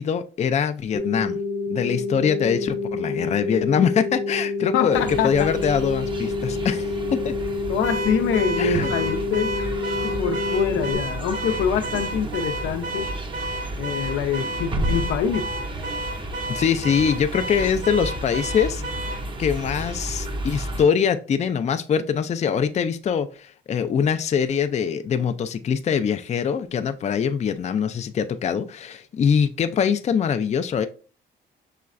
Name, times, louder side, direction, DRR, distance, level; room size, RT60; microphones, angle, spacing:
voice 1, 0.0-1.4 1.7-7.3 8.6-8.9 16.5-18.8 19.4-30.9, left 7 dB, 35° left, 0.4 m, -23 dB
sound 1, 0.9-10.9, left 3 dB, 55° left, 0.9 m, -28 dB
voice 2, 4.7-5.5 7.7-9.5 10.0-13.1 13.8-15.5, left 7 dB, 80° left, 0.6 m, -25 dB
sound 2, 4.9-20.9, right 1 dB, 25° right, 0.7 m, -32 dB
Car / Alarm, 7.8-19.2, right 1 dB, 80° right, 0.7 m, -32 dB
5.6 x 3.1 x 2.5 m
cardioid pair, 90°, 20 cm